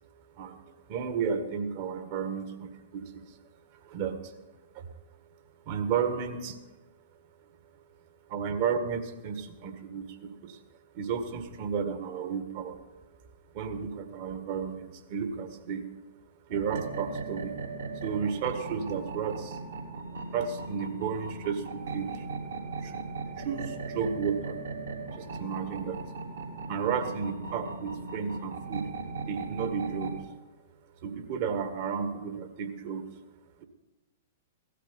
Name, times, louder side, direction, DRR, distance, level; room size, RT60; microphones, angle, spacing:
voice 1, 0.9-3.4 3.8-4.3 4.7-4.9 5.7-6.6 8.3-10.6 10.9-12.8 13.5-15.8 16.5-17.6 18.0-19.6 20.3-22.5 22.8-23.0 23.4-24.6 25.1-26.0 26.7-28.9 29.3-30.2 31.0-33.1 33.6-33.7, right 6 dB, 45° right, 7 dB, 1.7 m, -33 dB
sound 1, 16.5-30.2, right 3 dB, 65° right, 2.7 m, -38 dB
17.0 x 12.5 x 5.5 m, 1.2 s
figure-of-eight pair, 105°, 0 cm